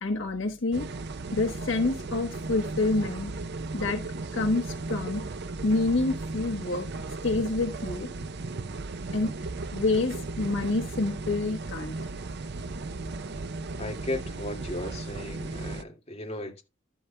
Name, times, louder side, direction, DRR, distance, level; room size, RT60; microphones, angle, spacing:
voice 1, 0.0-0.9 1.3-3.3 3.7-4.0 4.3-5.2 5.6-6.9 7.2-8.3 9.1-9.3 9.7-12.0, left 2 dB, 70° left, 1.3 m, -27 dB
sound 1, 0.7-15.8, right 3 dB, 55° right, 0.6 m, -36 dB
voice 2, 13.8-16.6, left 1 dB, 30° left, 2.1 m, -36 dB
12.0 x 11.0 x 2.2 m
head